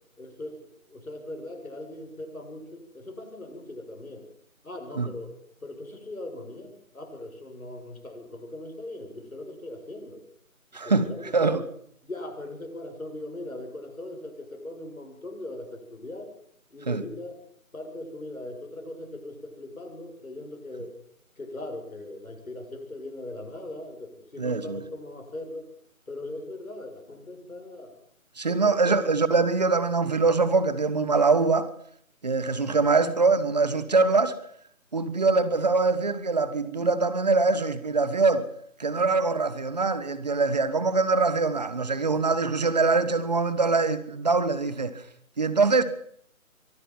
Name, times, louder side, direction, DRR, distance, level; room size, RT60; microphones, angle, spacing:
voice 1, 0.2-0.6 0.9-4.2 4.6-5.3 5.6-10.2 10.8-11.6 12.0-16.3 16.7-17.4 17.7-20.9 21.4-25.7 26.1-28.0 28.4-29.0, left 1 dB, 75° left, 7.4 m, -39 dB
voice 2, 10.7-11.6 16.9-17.0 24.4-24.8 28.4-31.7 32.2-34.4 34.9-38.5 38.8-45.0 45.4-45.8, right 4 dB, 30° right, 1.4 m, -23 dB
24.0 x 12.0 x 9.4 m
figure-of-eight pair, 165°, 42 cm